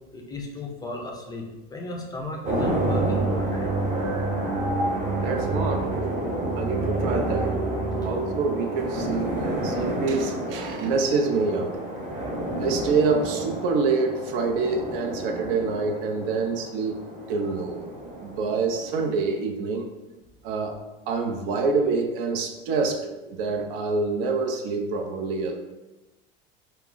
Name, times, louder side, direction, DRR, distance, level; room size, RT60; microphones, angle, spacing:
voice 1, 0.1-3.7, left 2 dB, 15° left, 0 dB, 0.4 m, -35 dB
sound 1, 2.4-19.3, right 2 dB, 25° right, 0.9 m, -29 dB
voice 2, 5.2-5.9 6.5-7.6 8.0-11.8 12.6-17.0 17.3-17.9 18.2-19.9 20.4-20.8 21.1-25.6, right 4 dB, 65° right, 3 dB, 0.5 m, -26 dB
2.2 x 2.0 x 3.8 m, 1.1 s
hypercardioid pair, 100°, 29 cm